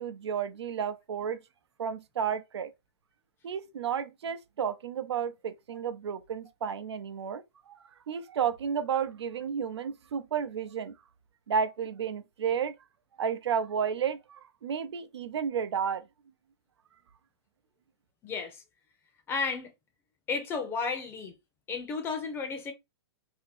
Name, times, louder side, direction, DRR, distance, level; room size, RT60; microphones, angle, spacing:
voice 1, 0.0-1.4 1.8-2.7 3.4-7.8 8.1-10.9 11.5-12.8 13.2-16.0, right 7 dB, 85° right, 0.6 m, -32 dB
voice 2, 18.2-18.6 19.3-19.7 20.3-21.3 21.7-22.7, left 4 dB, 15° left, 0.7 m, -33 dB
2.9 x 2.8 x 4.1 m
hypercardioid pair, 150°, 14 cm